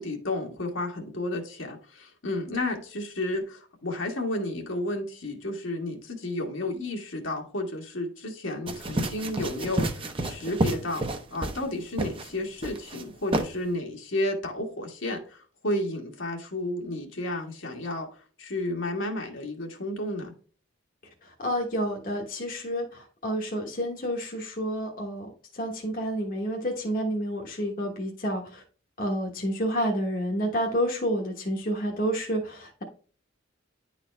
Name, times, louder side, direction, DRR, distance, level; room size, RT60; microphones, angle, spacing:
voice 1, 0.0-18.1 18.4-20.3, left 1 dB, 70° left, 1.6 m, -32 dB
sound 1, 8.7-11.7 12.0-12.3 12.6-13.0 13.3-13.5, right 2 dB, 25° right, 0.8 m, -29 dB
voice 2, 21.2-28.6 29.0-32.8, equal, 40° left, 1.1 m, -29 dB
10.5 x 4.1 x 3.3 m
head